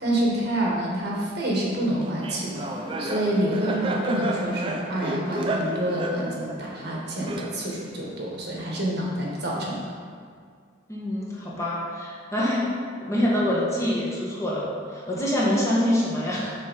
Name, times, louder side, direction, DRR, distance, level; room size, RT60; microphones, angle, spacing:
voice 1, 0.0-2.7 3.0-9.8, right 1 dB, 55° right, -3 dB, 1.3 m, -27 dB
Laughter, 2.0-7.9, right 1 dB, 25° right, 0.5 m, -31 dB
voice 2, 10.9-12.7 13.0-16.5, left 1 dB, 15° left, -6 dB, 1.1 m, -25 dB
6.3 x 4.2 x 5.1 m, 2.1 s
head